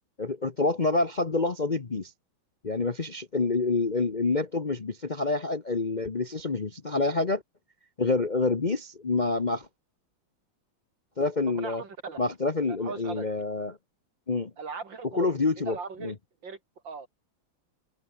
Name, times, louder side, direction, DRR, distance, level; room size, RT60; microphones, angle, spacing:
voice 1, 0.2-2.1 2.6-7.4 8.0-9.7 11.2-11.8 12.2-13.8 14.3-14.5 15.1-15.8 16.0-16.1, left 3 dB, 30° left, 0.9 m, -27 dB
voice 2, 11.6-12.2 12.7-13.3 14.6-15.3 15.7-16.1 16.4-16.6 16.8-17.1, right 4 dB, 65° right, 3.7 m, -38 dB
omnidirectional pair, 2.2 m